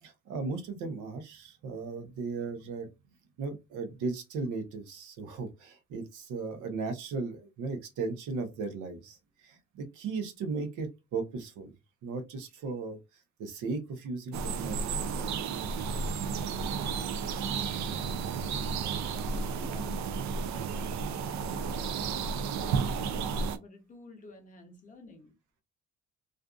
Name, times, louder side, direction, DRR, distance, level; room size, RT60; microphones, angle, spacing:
voice 1, 0.0-2.9 3.4-11.7 12.0-13.0 13.4-15.5, right 4 dB, 90° right, 0.8 m, -36 dB
sound 1, 14.3-23.6, right 5 dB, 70° right, 0.4 m, -32 dB
voice 2, 16.6-18.3 19.2-20.0 20.4-21.8 22.3-25.4, left 2 dB, 25° left, 0.6 m, -52 dB
2.5 x 2.5 x 2.3 m
cardioid pair, 180°, 30 cm